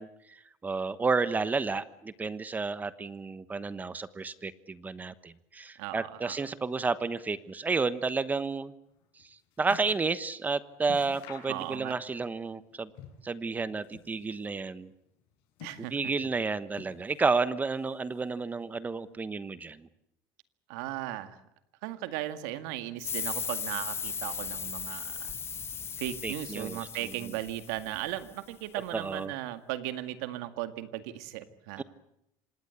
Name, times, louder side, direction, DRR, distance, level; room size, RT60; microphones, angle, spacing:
voice 1, 0.0-8.7 9.2-9.3 9.6-12.9 13.2-14.9 15.9-19.9 26.2-27.4 28.9-29.3 31.8-31.9, right 4 dB, 20° right, 15 dB, 1.1 m, -31 dB
voice 2, 5.8-6.4 11.5-12.0 15.6-15.9 20.7-21.4 21.8-25.3 26.0-31.8, right 14 dB, 90° right, 10 dB, 2.0 m, -37 dB
sound 1, 8.9-10.1 10.4-10.5 10.8-12.1 12.4-13.4 13.7-14.6 15.2-16.2 16.7-17.4 17.7-18.5 19.2-19.3, left 9 dB, 75° left, 6.9 m, -50 dB
sound 2, 23.0-28.3, left 7 dB, 30° left, 0.9 m, -37 dB
26.5 x 19.0 x 8.3 m, 0.80 s
cardioid pair, 125°, 9 cm